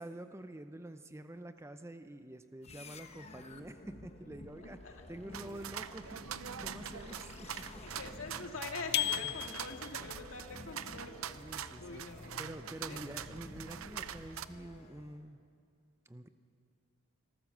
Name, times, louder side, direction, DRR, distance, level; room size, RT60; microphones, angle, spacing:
voice 1, 0.0-6.1 6.6-7.8 9.1-9.4 10.8-12.0 12.4-15.4 16.1-16.3, right 1 dB, 15° right, 9 dB, 0.6 m, -48 dB
sound 1, 2.6-15.3, left 2 dB, 30° left, 1.0 m, -51 dB
sound 2, 5.3-14.5, right 9 dB, 85° right, 0.6 m, -44 dB
voice 2, 8.0-11.1 11.8-12.4 12.8-13.0, left 3 dB, 75° left, 3 dB, 2.1 m, -44 dB
sound 3, 8.9-10.0, left 13 dB, 50° left, 0.5 m, -34 dB
25.5 x 14.0 x 7.3 m, 2.4 s
head